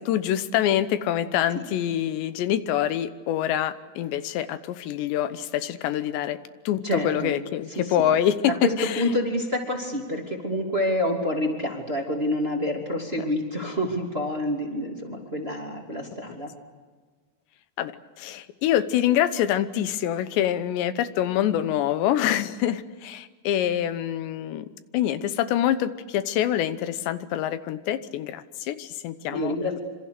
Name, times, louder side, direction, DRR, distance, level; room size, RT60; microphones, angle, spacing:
voice 1, 0.1-6.4 6.7-9.1 16.3-16.4 17.8-17.9 18.2-24.7 24.9-29.7, left 11 dB, 85° left, 12 dB, 3.2 m, -25 dB
voice 2, 6.8-7.3 7.8-8.0 8.6-16.5 29.3-29.8, left 1 dB, 15° right, 1 dB, 2.4 m, -27 dB
26.5 x 26.5 x 6.8 m, 1.4 s
omnidirectional pair, 5.0 m